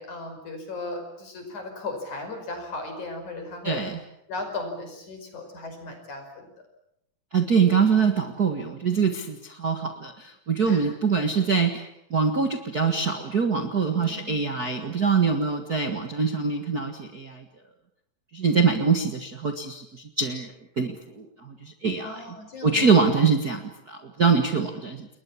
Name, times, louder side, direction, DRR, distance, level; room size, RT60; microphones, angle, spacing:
voice 1, 0.0-3.8 4.3-6.5 10.6-10.9 13.9-14.7 22.0-23.1, left 2 dB, 60° left, 5 dB, 6.8 m, -37 dB
voice 2, 7.3-17.4 18.3-22.2 22.6-23.6 23.9-25.1, right 5 dB, 35° right, 4 dB, 1.6 m, -24 dB
30.0 x 21.0 x 7.4 m, 0.78 s
omnidirectional pair, 3.9 m